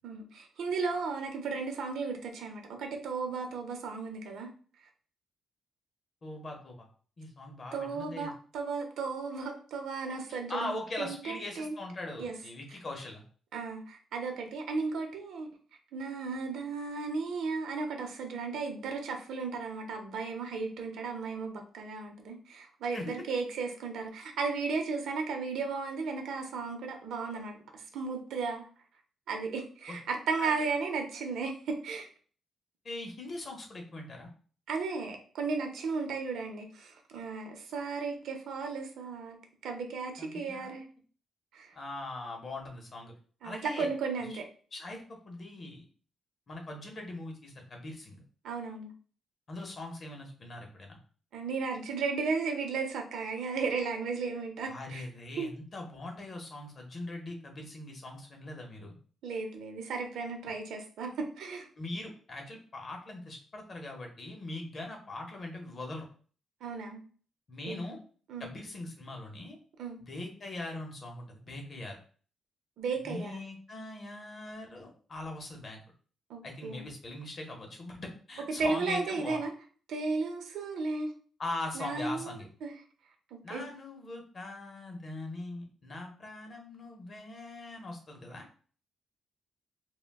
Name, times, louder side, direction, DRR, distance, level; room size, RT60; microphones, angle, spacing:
voice 1, 0.0-4.5 7.7-11.8 12.2-12.3 13.5-15.5 15.9-28.7 29.3-32.1 34.7-39.4 39.6-40.8 41.5-41.7 43.4-44.5 48.4-48.9 51.3-55.0 55.4-55.5 59.2-61.7 66.6-67.0 67.6-68.0 68.3-68.5 69.8-70.0 72.8-73.3 76.3-76.8 78.6-79.5 79.9-81.1 81.7-82.7 83.3-83.6, right 4 dB, 75° right, 4 dB, 0.6 m, -35 dB
voice 2, 6.2-6.9 7.2-8.3 10.5-13.2 22.9-23.1 29.9-30.0 30.4-30.5 32.8-34.3 40.2-40.7 41.7-43.1 43.4-43.9 44.7-45.8 46.5-48.2 49.5-51.0 54.7-58.9 61.8-66.1 67.5-68.0 68.4-69.6 70.0-72.0 73.1-75.8 76.4-79.4 81.4-82.5 83.4-88.4, left 2 dB, 35° left, 2 dB, 0.7 m, -41 dB
2.3 x 2.1 x 3.3 m, 0.42 s
cardioid pair, 150°, 0 cm